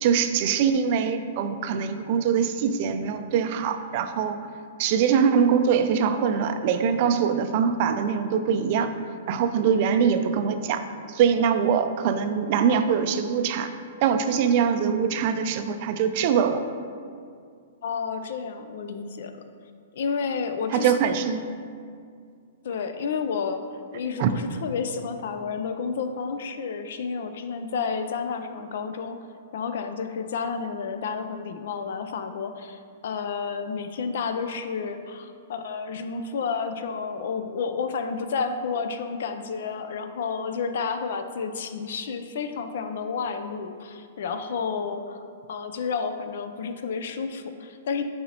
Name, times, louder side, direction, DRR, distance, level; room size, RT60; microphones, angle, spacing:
voice 1, 0.0-4.4 4.8-8.9 9.3-10.8 11.1-13.7 14.0-16.7 20.7-21.4 24.2-24.3, right 7 dB, 45° right, 9 dB, 0.4 m, -23 dB
voice 2, 17.8-19.4 19.9-20.9 22.6-23.6 23.9-29.2 29.5-45.2 45.5-48.0, left 5 dB, 65° left, 8 dB, 0.4 m, -31 dB
8.4 x 4.2 x 2.9 m, 2.2 s
hypercardioid pair, 145°, 0 cm